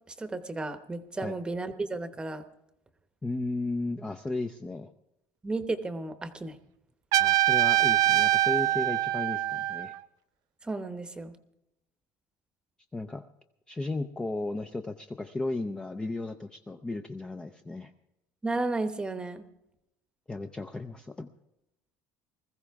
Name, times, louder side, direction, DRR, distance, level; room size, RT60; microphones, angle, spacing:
voice 1, 0.2-2.4 5.4-6.6 10.6-11.3 18.4-19.4, right 2 dB, 10° right, 10 dB, 0.9 m, -33 dB
voice 2, 3.2-4.9 7.2-9.9 12.9-13.2 13.7-17.9 20.3-21.3, left 2 dB, 10° left, 6 dB, 0.5 m, -34 dB
Trumpet, 7.1-10.0, right 15 dB, 50° right, 0.4 m, -24 dB
20.5 x 14.5 x 3.5 m, 0.87 s
cardioid pair, 160°, 8 cm